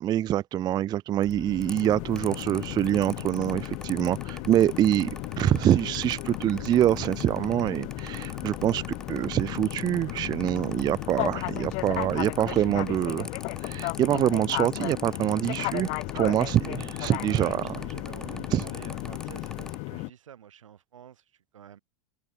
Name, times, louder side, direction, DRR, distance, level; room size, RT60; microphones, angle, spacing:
voice 1, 0.0-5.1 5.4-8.8 9.1-13.3 13.6-17.7 18.5-18.6, right 12 dB, 25° right, 0.4 m, -25 dB
Mechanical fan, 1.2-19.8, left 1 dB, 5° left, 1.0 m, -43 dB
sound 1, 1.3-20.1, left 30 dB, 45° left, 0.4 m, -35 dB
voice 2, 17.2-21.8, right 9 dB, 85° right, 7.4 m, -49 dB
hypercardioid pair, 110°, 16 cm